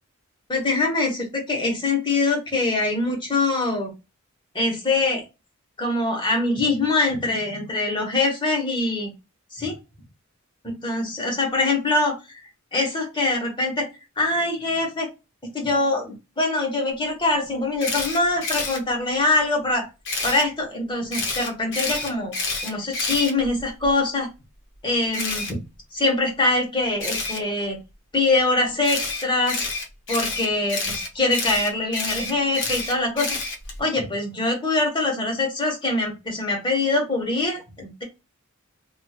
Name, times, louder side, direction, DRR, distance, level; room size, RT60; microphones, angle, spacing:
voice 1, 0.5-3.9 4.5-5.2 5.8-9.1 9.5-9.7 10.6-12.2 12.7-13.9 14.2-15.1 15.5-19.9 20.2-22.3 22.6-24.3 24.8-25.6 25.9-27.8 28.1-29.6 30.1-33.3 33.8-38.0, left 2 dB, 25° left, 1 dB, 1.2 m, -23 dB
Camera, 17.8-18.8 20.0-20.4 21.1-23.9 25.1-25.5 27.0-27.4 28.8-33.8, left 3 dB, 60° left, 0.9 m, -28 dB
3.0 x 2.6 x 2.4 m, 0.25 s
head